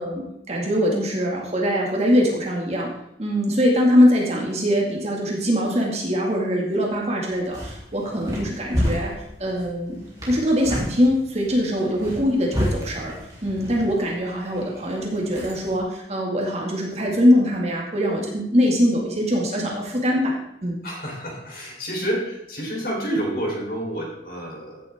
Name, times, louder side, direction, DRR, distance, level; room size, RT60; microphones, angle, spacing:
voice 1, 0.0-2.9 3.2-9.1 9.4-10.0 10.3-13.2 13.4-20.4 20.6-20.8, equal, 35° right, -2 dB, 2.2 m, -22 dB
sound 1, 7.3-15.8, equal, 20° right, 3.3 m, -31 dB
voice 2, 20.8-24.8, right 1 dB, 50° left, -2 dB, 3.7 m, -29 dB
15.0 x 7.7 x 3.7 m, 0.81 s
head